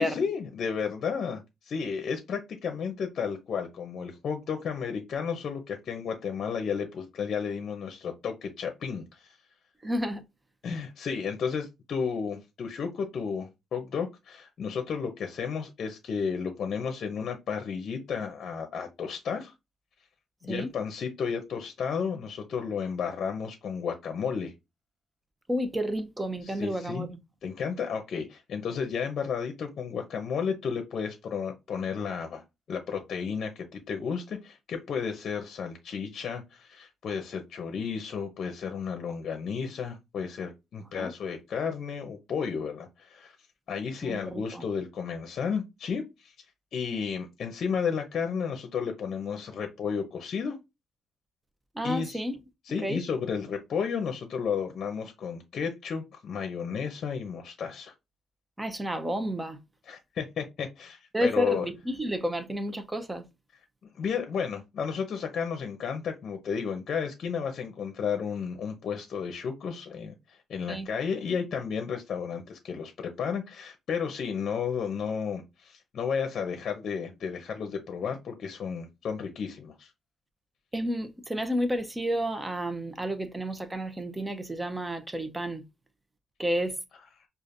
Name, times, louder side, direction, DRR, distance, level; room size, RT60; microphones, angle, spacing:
voice 1, 0.0-9.4 10.6-19.5 20.4-24.5 26.4-27.1 27.4-32.4 32.7-43.3 43.7-46.3 46.7-50.6 51.8-52.2 52.6-57.9 59.9-61.7 63.9-79.9, left 6 dB, 60° left, 0.7 m, -33 dB
voice 2, 9.8-10.2 20.5-20.7 25.5-27.2 40.9-41.1 44.0-44.6 51.8-52.4 52.8-53.0 58.6-59.6 61.1-63.2 70.7-70.9 80.7-85.6 86.4-86.8, equal, 15° right, 0.7 m, -31 dB
5.0 x 2.5 x 2.5 m
cardioid pair, 90°, 0 cm